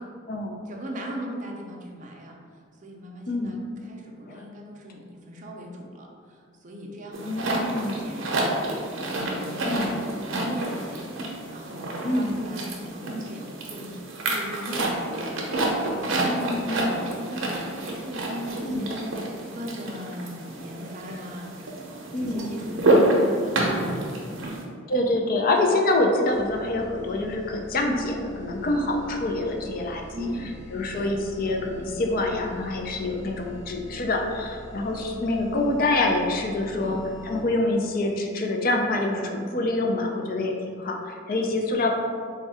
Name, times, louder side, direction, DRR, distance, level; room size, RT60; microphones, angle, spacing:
voice 1, 0.0-23.9 24.3-24.6 30.1-30.6 30.9-31.1 36.7-37.0, equal, 40° right, 0 dB, 0.5 m, -39 dB
voice 2, 3.3-3.6 4.3-4.4 7.3-8.0 9.6-9.9 12.0-12.3 16.3-16.9 18.6-18.9 22.1-22.5 24.9-30.3 30.7-37.0 37.3-41.9, left 2 dB, 45° left, 2 dB, 0.4 m, -26 dB
sound 1, 7.1-24.6, right 1 dB, 85° right, 0.6 m, -28 dB
sound 2, 26.3-37.7, equal, 20° left, 1.0 m, -44 dB
3.5 x 2.3 x 4.1 m, 2.1 s
head